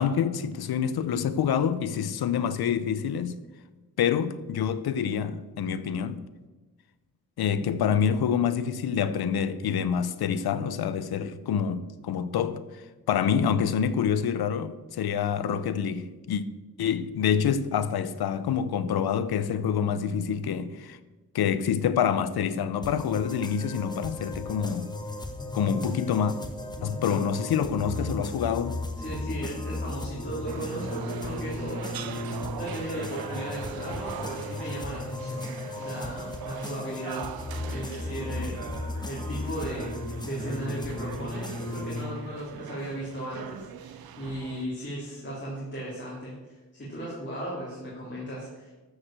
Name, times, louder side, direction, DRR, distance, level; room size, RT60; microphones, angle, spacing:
voice 1, 0.0-3.4 4.0-6.2 7.4-16.4 16.8-21.0 21.3-24.9 25.5-26.4 26.8-28.8, left 8 dB, 85° left, 0.8 m, -27 dB
sound 1, 22.8-42.0, left 2 dB, 10° left, 0.9 m, -36 dB
voice 2, 26.8-27.2 27.8-28.1 29.0-32.1 32.5-37.2 37.7-40.0 40.2-48.7, right 1 dB, 30° left, 3.3 m, -36 dB
sound 2, 30.5-44.7, right 9 dB, 70° right, 0.7 m, -41 dB
13.0 x 4.9 x 7.4 m
wide cardioid pair, 150°, 37 cm